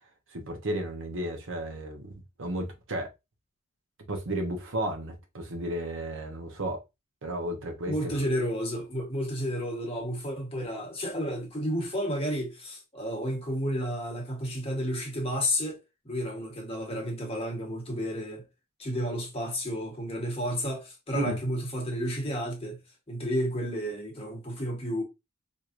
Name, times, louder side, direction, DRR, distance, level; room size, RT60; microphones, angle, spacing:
voice 1, 0.3-2.1 2.4-3.1 4.1-6.8 7.2-8.2 21.1-21.4, right 1 dB, 60° right, 0.9 m, -33 dB
voice 2, 7.8-18.4 18.8-22.8 23.1-25.0, equal, 25° left, 1.1 m, -31 dB
4.5 x 2.7 x 2.5 m
head